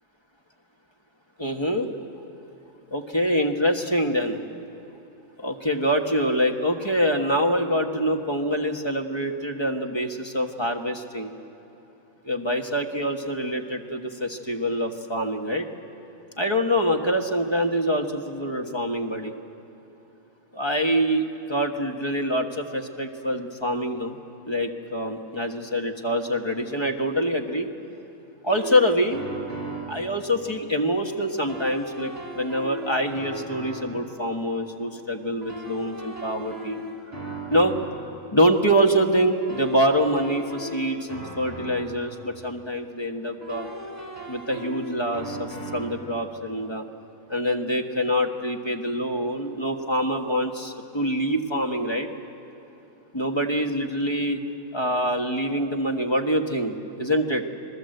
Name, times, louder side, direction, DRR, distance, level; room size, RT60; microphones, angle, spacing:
voice 1, 1.4-1.9 2.9-4.4 5.4-11.3 12.2-15.7 16.4-19.3 20.5-24.2 24.5-27.7 28.4-29.2 29.9-36.8 37.4-37.8 38.3-43.7 44.3-46.9 47.3-52.1 53.1-54.4 54.7-57.4, equal, 20° left, 3 dB, 1.4 m, -25 dB
sound 1, 28.5-30.1 31.4-34.1 35.4-38.1 39.4-42.1 43.4-46.1, right 1 dB, 25° right, 4.4 m, -37 dB
27.5 x 19.5 x 7.9 m, 3.0 s
omnidirectional pair, 1.5 m